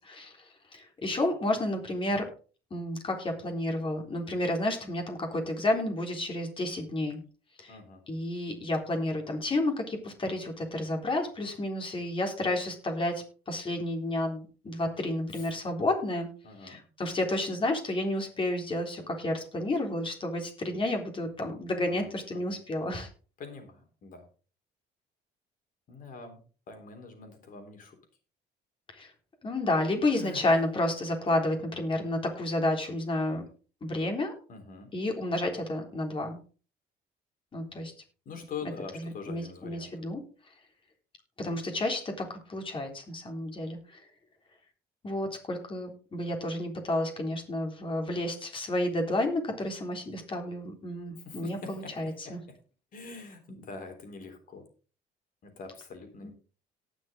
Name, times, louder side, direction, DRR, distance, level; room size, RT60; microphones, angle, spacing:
voice 1, 0.0-2.3 2.7-7.2 7.6-7.8 8.1-16.3 16.6-23.1 28.9-29.1 29.4-33.4 33.8-34.3 34.9-36.4 37.5-37.9 38.9-40.2 41.4-44.0 45.0-52.4 56.2-56.3, left 1 dB, 30° left, 3 dB, 3.7 m, -31 dB
voice 2, 7.7-8.0 15.3-15.5 16.4-16.8 21.9-22.6 23.4-24.2 25.9-28.0 30.2-30.5 34.5-34.9 38.3-39.9 51.3-52.3 52.9-54.6 55.4-56.3, left 4 dB, 55° left, 5 dB, 3.8 m, -44 dB
18.5 x 6.2 x 3.8 m, 0.37 s
cardioid pair, 110°, 17 cm